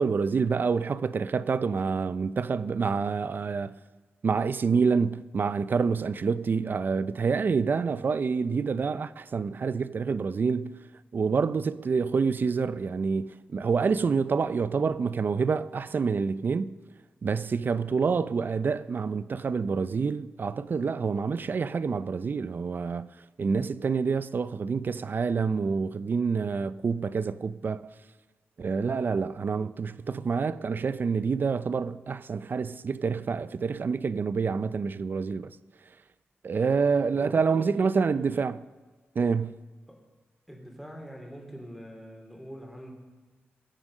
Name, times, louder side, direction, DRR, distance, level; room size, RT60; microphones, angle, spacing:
voice 1, 0.0-3.7 4.2-10.8 11.1-16.7 17.2-23.1 23.4-27.8 28.6-35.5 36.4-38.6 39.2-39.5, right 5 dB, 50° right, 0.5 m, -27 dB
voice 2, 37.2-38.2 39.9-40.0 40.5-42.9, equal, ahead, 3.3 m, -43 dB
21.5 x 7.4 x 6.5 m
wide cardioid pair, 95°, 4 cm